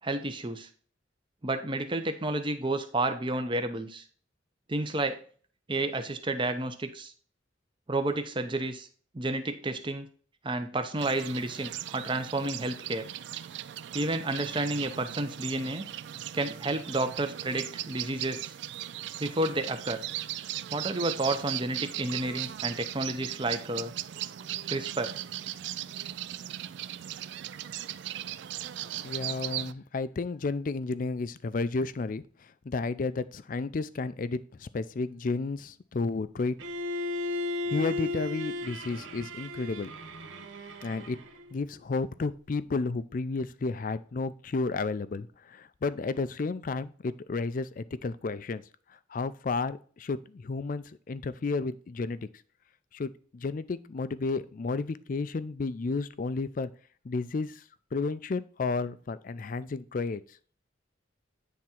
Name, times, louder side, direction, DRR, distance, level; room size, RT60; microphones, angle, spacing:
voice 1, 0.0-0.7 1.4-4.0 4.7-5.2 5.7-7.1 7.9-8.9 9.1-10.1 10.4-13.1 13.9-15.8 16.3-18.5 19.2-20.0 20.7-23.9 24.7-25.1, right 2 dB, 25° right, 8 dB, 0.7 m, -31 dB
sound 1, 11.0-29.7, right 12 dB, 65° right, 0.3 m, -38 dB
voice 2, 29.0-36.6 37.7-39.9 40.8-41.2 41.5-48.6 49.1-52.3 52.9-56.7 57.0-57.6 57.9-60.4, left 3 dB, 45° left, 15 dB, 0.4 m, -32 dB
Bowed string instrument, 36.6-41.5, left 2 dB, 85° right, 0.8 m, -35 dB
9.3 x 3.6 x 4.3 m, 0.43 s
head